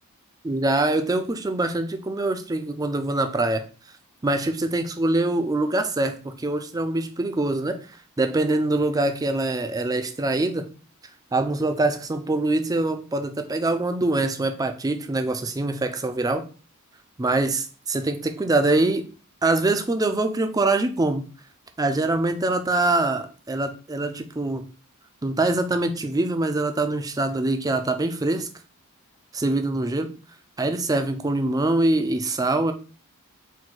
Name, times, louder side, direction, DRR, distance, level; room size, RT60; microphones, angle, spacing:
voice 1, 0.4-3.7 4.2-7.8 8.2-10.7 11.3-16.4 17.2-19.0 19.4-21.2 21.8-24.7 25.2-28.5 29.3-30.1 30.6-32.7, right 2 dB, 15° right, 7 dB, 0.3 m, -24 dB
4.6 x 2.2 x 3.9 m, 0.37 s
head